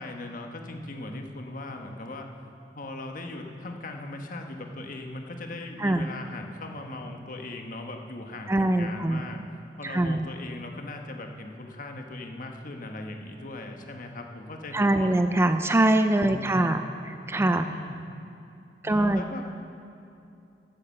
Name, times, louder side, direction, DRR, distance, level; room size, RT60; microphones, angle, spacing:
voice 1, 0.0-2.3 2.7-9.4 9.8-15.1 16.3-16.8 17.4-18.0 18.8-19.5, left 2 dB, 50° left, 4 dB, 1.2 m, -39 dB
voice 2, 8.5-9.2 9.8-10.3 14.7-16.8 17.1-17.6 18.8-19.2, right 1 dB, 15° right, 8 dB, 0.3 m, -23 dB
10.5 x 9.3 x 7.5 m, 2.7 s
head